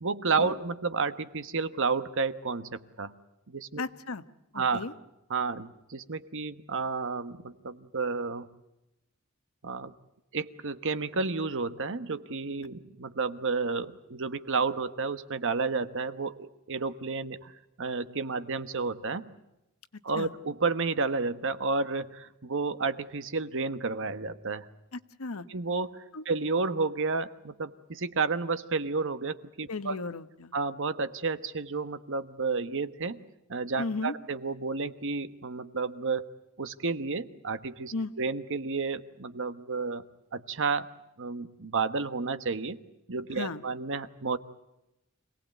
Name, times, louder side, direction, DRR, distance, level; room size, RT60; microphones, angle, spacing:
voice 1, 0.0-3.1 3.5-3.8 4.5-4.8 5.3-8.5 9.6-9.9 10.3-17.5 17.8-19.2 20.0-24.7 25.5-30.0 30.5-33.2 33.5-40.0 40.3-40.9 41.2-42.8 43.1-44.4, right 4 dB, 60° right, 12 dB, 1.2 m, -31 dB
voice 2, 3.8-4.2 4.5-4.9 20.2-20.3 24.9-25.4 26.1-26.2 29.7-30.5 33.8-34.1 37.9-38.1 43.4-43.6, left 3 dB, 75° left, 11 dB, 1.1 m, -35 dB
26.5 x 18.0 x 9.2 m, 0.93 s
head